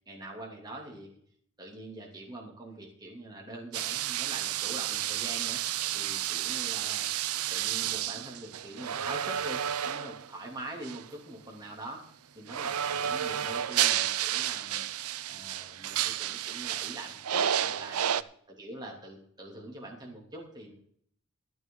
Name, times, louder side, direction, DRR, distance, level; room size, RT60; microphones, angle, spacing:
voice 1, 0.1-1.2 1.6-5.6 5.9-7.1 7.5-12.0 12.3-14.9 15.3-18.2 18.5-20.7, right 1 dB, 20° right, -1 dB, 2.8 m, -44 dB
sound 1, 3.7-10.3 10.8-11.0 12.5-18.2, right 10 dB, 80° right, 0.5 m, -31 dB
14.5 x 12.0 x 3.9 m, 0.62 s
head